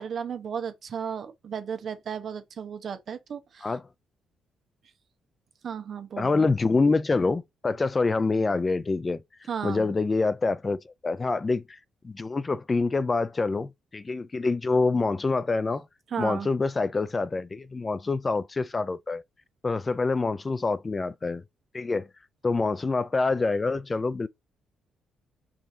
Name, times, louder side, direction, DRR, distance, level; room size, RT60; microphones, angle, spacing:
voice 1, 0.0-3.8 5.6-6.5 9.5-9.9 16.1-16.5, right 7 dB, 55° right, 1.0 m, -34 dB
voice 2, 6.2-9.2 9.6-11.8 12.0-15.9 16.2-19.2 19.6-21.4 21.7-22.1 22.4-24.3, left 3 dB, 25° left, 0.3 m, -26 dB
4.8 x 2.7 x 3.7 m
cardioid pair, 90°, 0 cm